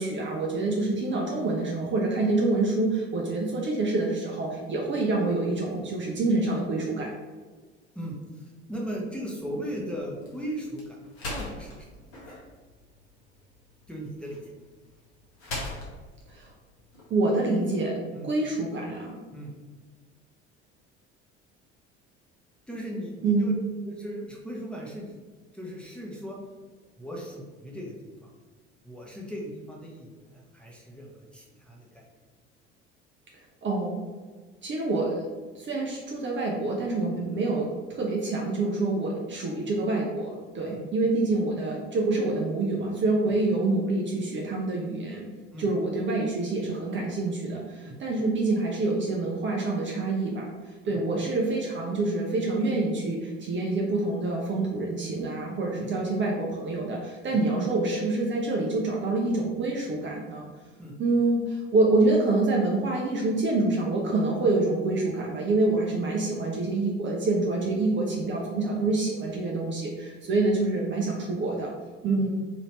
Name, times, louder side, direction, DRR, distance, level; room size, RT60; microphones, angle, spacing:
voice 1, 0.0-7.1 16.3-16.5 17.1-19.2 23.2-23.5 33.6-34.0 34.6-35.3 35.5-45.3 45.6-60.5 61.0-71.7 72.0-72.3, right 2 dB, 35° right, -2 dB, 0.6 m, -26 dB
voice 2, 7.9-11.0 11.3-11.9 13.9-14.5 18.1-18.3 19.3-19.5 22.7-23.5 23.8-25.2 25.5-26.4 27.0-28.3 28.8-32.0 37.1-37.3 40.6-40.8 45.5-45.7 47.8-48.0 50.8-51.0 55.8-55.9 57.3-57.4 60.8-61.0 72.0-72.3, equal, 5° left, -4 dB, 0.9 m, -38 dB
sound 1, 9.3-17.6, left 2 dB, 65° left, 1.1 m, -42 dB
3.2 x 2.7 x 3.1 m, 1.4 s
figure-of-eight pair, 60°, 35 cm